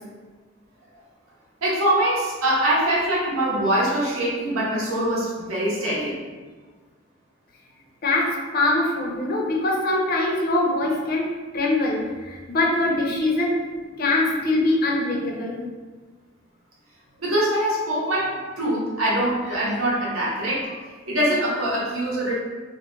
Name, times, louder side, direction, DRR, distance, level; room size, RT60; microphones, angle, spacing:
voice 1, 1.6-6.1 17.2-20.6 21.1-22.3, right 1 dB, 85° right, -6 dB, 0.8 m, -23 dB
voice 2, 8.0-13.6 14.0-15.6, left 2 dB, 45° left, -2 dB, 0.5 m, -23 dB
2.3 x 2.1 x 3.0 m, 1.4 s
head